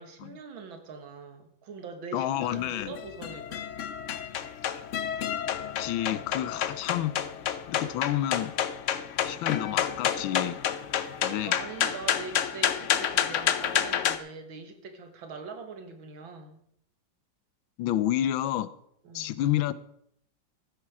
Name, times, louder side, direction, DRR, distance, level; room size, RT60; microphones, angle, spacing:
voice 1, 0.0-3.7 11.2-16.6 19.0-19.3, right 4 dB, 85° right, 7 dB, 2.3 m, -42 dB
voice 2, 2.1-2.9 4.6-4.8 5.8-7.1 7.7-8.5 9.2-10.6 11.2-11.5 17.8-18.7 19.1-19.7, left 12 dB, 90° left, 17 dB, 1.5 m, -29 dB
sound 1, 2.4-14.2, left 9 dB, 70° left, 0.7 m, -30 dB
14.5 x 8.2 x 4.8 m, 0.72 s
omnidirectional pair, 2.1 m